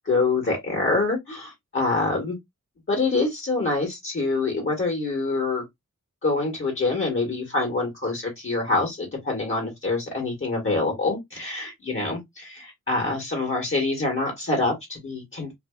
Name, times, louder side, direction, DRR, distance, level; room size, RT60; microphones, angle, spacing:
voice 1, 0.1-2.4 2.9-5.6 6.2-15.5, left 3 dB, 40° left, 1.2 m, -25 dB
2.6 x 2.2 x 2.2 m
cardioid pair, 60°, 32 cm